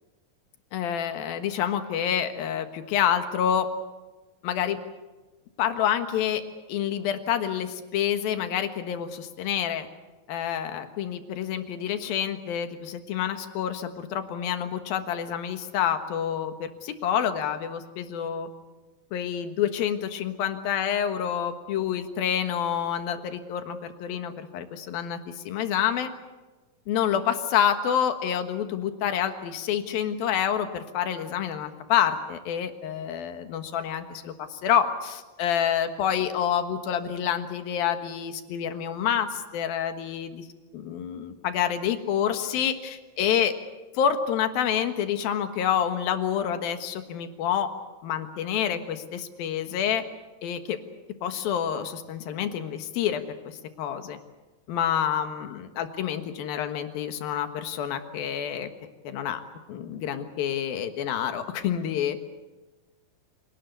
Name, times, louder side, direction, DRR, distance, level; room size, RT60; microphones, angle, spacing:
voice 1, 0.7-3.7 4.4-4.8 5.6-6.4 6.7-9.9 10.3-18.5 19.1-26.1 26.9-40.4 40.7-43.5 43.9-47.7 48.0-50.0 50.4-50.8 51.2-54.2 54.7-58.7 59.0-59.4 59.7-62.2, left 9 dB, 90° left, 8 dB, 3.3 m, -28 dB
26.5 x 18.5 x 8.2 m, 1.2 s
omnidirectional pair, 4.1 m